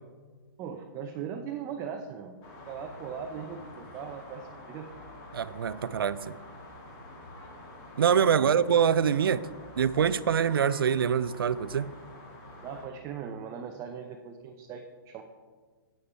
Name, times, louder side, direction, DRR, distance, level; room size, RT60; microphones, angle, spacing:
voice 1, 0.6-2.4 2.7-4.9 8.3-9.0 12.6-15.2, right 7 dB, 25° right, 4 dB, 0.6 m, -39 dB
sound 1, 2.4-12.9, left 2 dB, 30° left, 2.1 m, -48 dB
voice 2, 5.3-6.3 8.0-9.5 9.8-11.9, right 7 dB, 80° right, 17 dB, 0.4 m, -25 dB
8.5 x 8.4 x 4.5 m, 1.5 s
hypercardioid pair, 130°, 12 cm